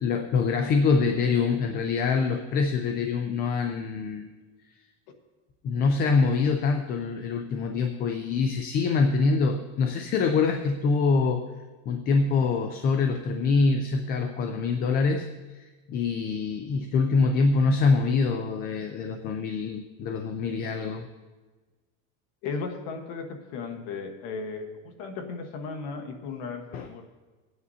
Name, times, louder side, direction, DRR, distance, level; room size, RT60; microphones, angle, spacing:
voice 1, 0.0-4.3 5.6-11.5 11.9-15.3 15.5-21.1 26.7-26.9, left 4 dB, 25° left, 6 dB, 0.4 m, -25 dB
voice 2, 22.4-27.0, left 4 dB, 55° left, 5 dB, 1.3 m, -36 dB
18.5 x 9.4 x 2.8 m, 1.3 s
cardioid pair, 160°, 38 cm